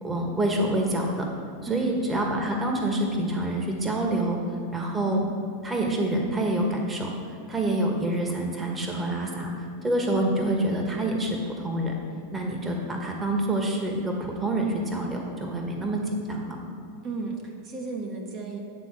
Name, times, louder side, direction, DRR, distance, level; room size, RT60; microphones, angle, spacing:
voice 1, 0.0-1.3 1.7-4.4 4.7-5.3 5.6-7.1 7.5-9.5 9.8-11.9 12.3-16.6, right 1 dB, 15° right, 1 dB, 1.3 m, -27 dB
voice 2, 1.7-2.0 17.0-18.6, right 4 dB, 45° right, 1 dB, 1.1 m, -34 dB
9.3 x 3.8 x 6.1 m, 2.3 s
hypercardioid pair, 115°, 0 cm